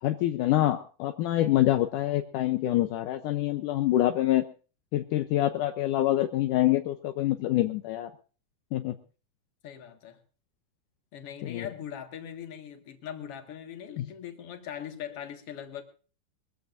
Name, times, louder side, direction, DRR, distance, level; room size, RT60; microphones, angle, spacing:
voice 1, 0.0-4.5 4.9-8.1 8.7-9.0 11.4-11.7 14.0-14.1, left 14 dB, 75° left, 7 dB, 2.3 m, -26 dB
voice 2, 9.6-10.2 11.1-15.8, left 9 dB, 50° left, 5 dB, 2.6 m, -41 dB
22.5 x 15.0 x 2.6 m, 0.36 s
omnidirectional pair, 3.7 m